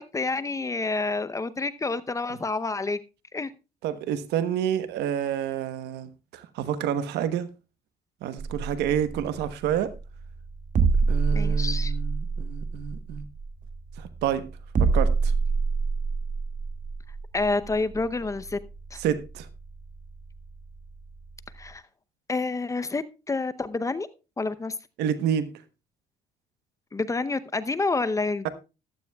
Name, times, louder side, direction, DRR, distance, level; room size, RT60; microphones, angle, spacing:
voice 1, 0.0-3.0 3.3-3.5 11.3-11.9 17.3-18.6 18.9-19.0 21.5-21.8 22.3-24.1 24.4-24.7 26.9-28.5, left 3 dB, 20° left, 0.7 m, -28 dB
voice 2, 3.8-7.5 8.2-9.9 11.1-13.2 14.0-14.5 14.8-15.3 19.0-19.5 25.0-25.5, right 9 dB, 80° right, 1.1 m, -29 dB
sound 1, 8.4-21.7, right 4 dB, 50° right, 2.0 m, -28 dB
14.5 x 12.0 x 2.3 m
cardioid pair, 110°, 17 cm